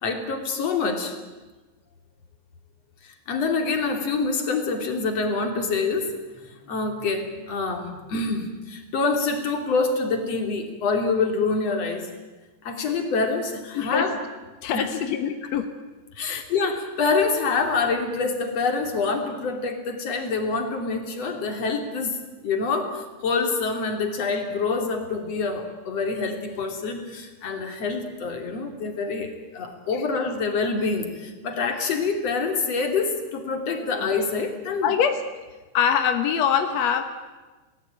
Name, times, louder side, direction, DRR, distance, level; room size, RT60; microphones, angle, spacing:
voice 1, 0.0-1.1 3.0-6.1 6.4-12.1 12.6-14.2 14.7-15.0 16.1-34.9, left 4 dB, 45° left, 4 dB, 3.8 m, -26 dB
voice 2, 13.7-14.1 14.6-15.7 16.2-16.4 33.9-34.1 34.8-35.2 35.7-37.0, left 8 dB, 65° left, 7 dB, 1.8 m, -23 dB
30.0 x 19.0 x 9.1 m, 1.2 s
omnidirectional pair, 4.5 m